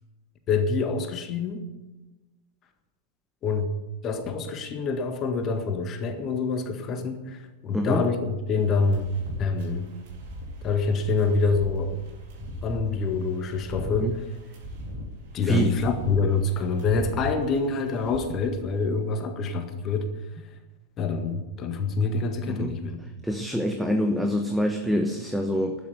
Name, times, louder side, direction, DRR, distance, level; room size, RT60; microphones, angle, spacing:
voice 1, 0.5-1.7 3.4-3.7 4.0-9.1 9.4-9.9 10.6-12.0 12.6-14.3 15.3-20.1 21.0-23.0, left 4 dB, 30° left, 7 dB, 1.6 m, -26 dB
voice 2, 7.7-8.0 14.0-14.1 15.4-15.7 22.5-22.7 23.2-25.8, equal, ahead, 4 dB, 1.1 m, -25 dB
sound 1, 8.6-18.2, left 1 dB, 50° right, 4.1 m, -40 dB
12.5 x 9.2 x 9.2 m, 1.2 s
figure-of-eight pair, 90°, 0 cm